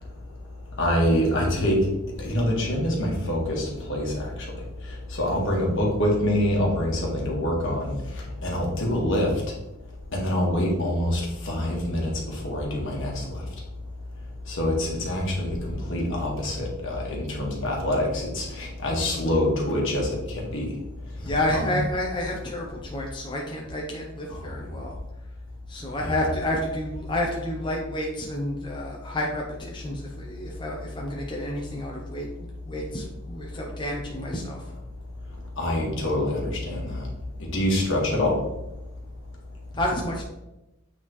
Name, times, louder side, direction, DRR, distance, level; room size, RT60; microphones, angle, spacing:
voice 1, 0.8-1.8 2.2-4.2 5.1-9.3 10.1-13.4 14.5-20.7 21.5-21.7 24.4-24.6 26.0-26.1 35.6-37.0 37.5-38.3, left 1 dB, 60° left, -2 dB, 1.6 m, -25 dB
voice 2, 21.2-25.0 25.7-32.3 32.6-34.7 39.7-40.2, left 1 dB, 20° left, -1 dB, 0.6 m, -30 dB
8.7 x 3.7 x 3.1 m, 0.97 s
head